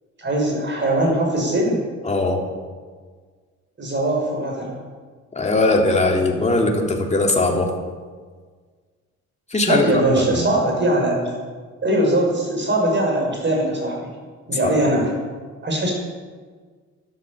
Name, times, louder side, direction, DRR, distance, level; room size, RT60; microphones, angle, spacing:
voice 1, 0.2-1.8 3.8-4.8 9.6-11.3 11.8-14.1 14.5-15.1 15.6-15.9, right 1 dB, 40° right, 0 dB, 6.4 m, -21 dB
voice 2, 2.0-2.4 5.3-7.7 9.5-10.4 14.6-14.7, left 2 dB, 20° left, 0 dB, 3.3 m, -20 dB
13.0 x 12.0 x 8.1 m, 1.5 s
cardioid pair, 90°, 30 cm